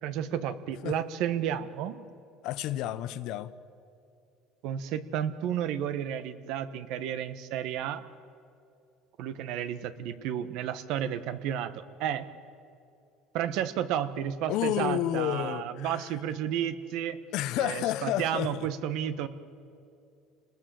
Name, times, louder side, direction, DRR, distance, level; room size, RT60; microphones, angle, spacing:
voice 1, 0.0-2.0 4.6-8.0 9.2-12.3 13.3-17.2 17.6-19.3, right 10 dB, 65° right, 1.3 m, -32 dB
voice 2, 2.4-3.5 14.5-16.1 17.3-18.7, left 13 dB, 65° left, 1.0 m, -31 dB
28.5 x 20.0 x 7.8 m
cardioid pair, 140°, 0 cm